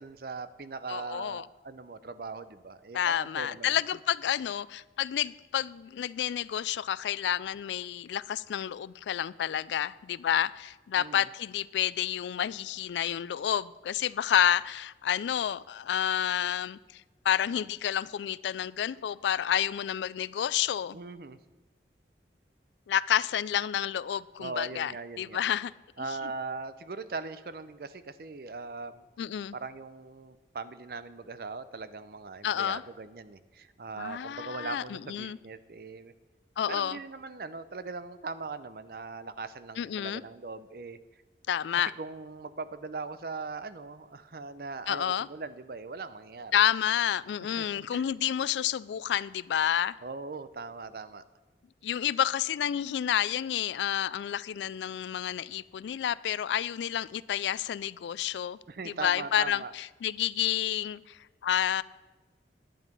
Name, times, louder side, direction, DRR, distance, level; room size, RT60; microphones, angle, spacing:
voice 1, 0.0-3.8 11.0-11.3 20.9-21.4 24.4-25.4 26.0-29.1 29.5-36.1 36.7-41.0 42.0-46.6 47.4-47.7 47.9-48.0 50.0-51.2 58.7-59.7, right 4 dB, 55° right, 14 dB, 0.5 m, -40 dB
voice 2, 0.9-1.4 2.9-21.0 22.9-24.9 25.2-25.7 29.2-29.5 32.4-32.8 34.0-35.4 36.6-37.0 39.8-40.2 41.5-41.9 44.9-45.3 46.5-50.0 51.8-58.6 58.9-61.8, left 10 dB, 85° left, 19 dB, 0.3 m, -29 dB
11.0 x 8.9 x 5.3 m, 1.2 s
head